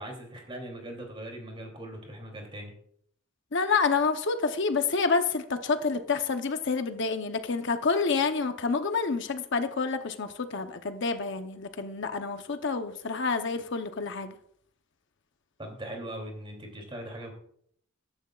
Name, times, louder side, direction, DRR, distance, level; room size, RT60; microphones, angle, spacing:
voice 1, 0.0-2.7 15.6-17.3, right 1 dB, 25° right, 2 dB, 2.9 m, -40 dB
voice 2, 3.5-14.3, left 4 dB, 60° left, 8 dB, 0.8 m, -28 dB
14.0 x 11.0 x 2.4 m, 0.66 s
head